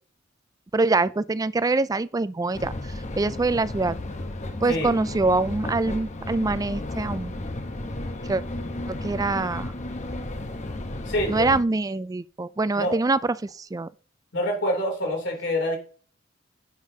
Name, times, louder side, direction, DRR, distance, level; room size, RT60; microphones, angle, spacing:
voice 1, 0.7-2.7 3.2-4.0 4.6-7.5 8.3-8.4 8.9-9.7 11.3-13.9, right 3 dB, 20° right, 0.3 m, -24 dB
sound 1, 2.5-11.6, left 1 dB, 35° left, 1.0 m, -33 dB
voice 2, 11.1-11.5 12.7-13.0 14.3-15.8, left 1 dB, 60° left, 3.2 m, -26 dB
10.0 x 8.3 x 2.8 m
head